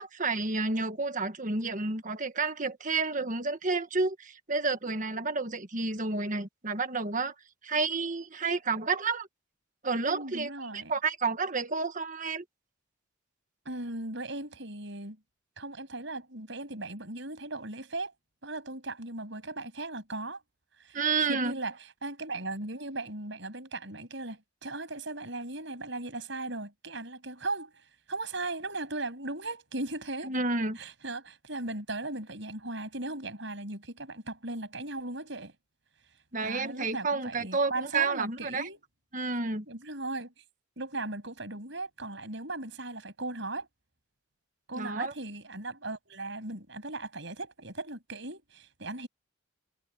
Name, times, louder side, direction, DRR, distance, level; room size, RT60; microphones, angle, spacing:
voice 1, 0.0-7.3 7.6-9.3 9.8-12.4 20.9-21.5 30.2-30.8 36.3-38.7 39.1-39.6 44.7-45.1, right 4 dB, 40° right, 1.6 m, -30 dB
voice 2, 10.0-10.9 13.6-15.2 15.6-18.1 18.4-20.4 20.8-21.0 21.3-21.8 22.0-30.4 30.8-35.5 36.4-38.8 39.7-40.3 40.8-43.7 44.7-49.1, right 2 dB, 60° right, 7.7 m, -37 dB
head